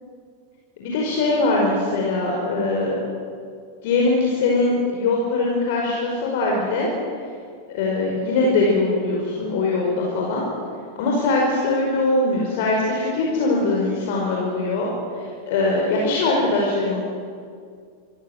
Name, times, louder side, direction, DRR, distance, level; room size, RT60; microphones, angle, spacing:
voice 1, 0.8-3.0 3.8-6.9 7.7-10.4 10.9-17.0, left 2 dB, 50° left, -2 dB, 5.2 m, -21 dB
25.5 x 16.0 x 9.5 m, 2.2 s
figure-of-eight pair, 90°, 0 cm